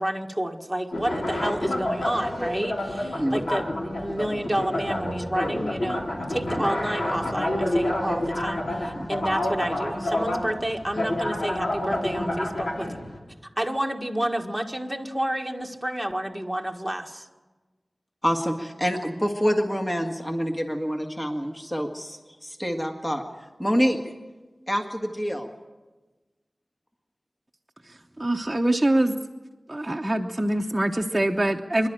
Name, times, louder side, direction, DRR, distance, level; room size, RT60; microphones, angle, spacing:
voice 1, 0.0-13.0 13.6-17.3, right 1 dB, 5° right, 1 dB, 1.8 m, -30 dB
sound 1, 0.9-13.2, left 1 dB, 80° left, 3.5 m, -28 dB
voice 2, 18.2-23.2 23.6-24.0 24.7-25.5, equal, 15° left, 3 dB, 1.8 m, -26 dB
voice 3, 28.2-29.1 29.7-31.9, right 1 dB, 20° right, 0 dB, 0.9 m, -24 dB
26.0 x 11.5 x 8.9 m, 1.2 s
wide cardioid pair, 60°, 0 cm